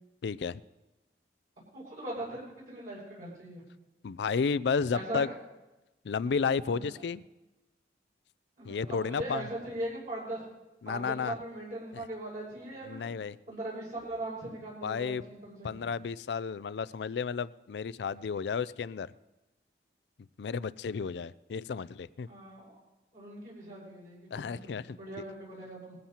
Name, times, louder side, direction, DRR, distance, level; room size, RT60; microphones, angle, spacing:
voice 1, 0.2-0.6 4.0-5.3 6.0-7.2 8.6-9.4 10.8-11.3 11.9-12.0 12.9-13.4 14.8-15.2 15.6-19.1 20.4-22.3 24.3-25.0, left 5 dB, 75° left, 18 dB, 0.4 m, -32 dB
voice 2, 1.7-3.6 4.9-5.3 6.6-6.9 8.6-10.4 10.8-13.1 13.5-15.8 22.3-22.8 23.1-26.0, right 1 dB, 50° right, -6 dB, 6.2 m, -40 dB
21.0 x 14.5 x 2.9 m, 1.0 s
head